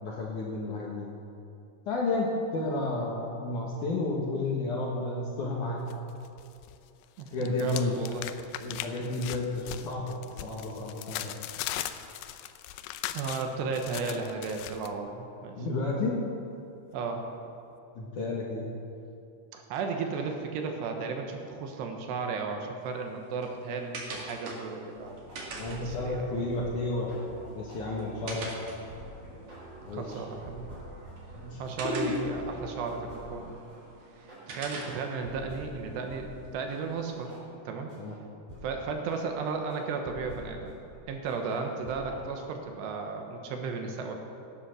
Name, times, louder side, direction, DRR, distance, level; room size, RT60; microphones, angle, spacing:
voice 1, 0.0-1.1 1.9-5.8 7.3-7.9 8.6-10.2 10.4-11.4 15.6-16.3 18.0-18.7 25.6-27.1 27.5-28.5 29.9-30.2 31.3-32.1 38.0-38.2, left 2 dB, 60° left, -2 dB, 2.3 m, -31 dB
sound 1, 5.9-6.8 7.0-14.9, left 12 dB, 80° left, 2.5 m, -39 dB
voice 2, 7.2-8.2 13.1-15.6 16.9-17.2 19.5-25.2 25.7-26.5 29.9-30.7 31.6-33.6 34.2-37.9 38.6-40.7 41.1-44.1, right 4 dB, 75° right, 3 dB, 3.2 m, -34 dB
sound 2, 22.8-37.4, right 3 dB, 50° right, 2.7 m, -46 dB
sound 3, 24.9-35.7 36.1-36.3 36.7-36.8 37.3-37.4 37.9-38.0 38.5-38.7 39.1-39.2 39.7-40.5 40.9-41.0 41.3-42.2, right 1 dB, 20° right, 4.2 m, -46 dB
17.5 x 10.0 x 6.4 m, 2.6 s
omnidirectional pair, 5.2 m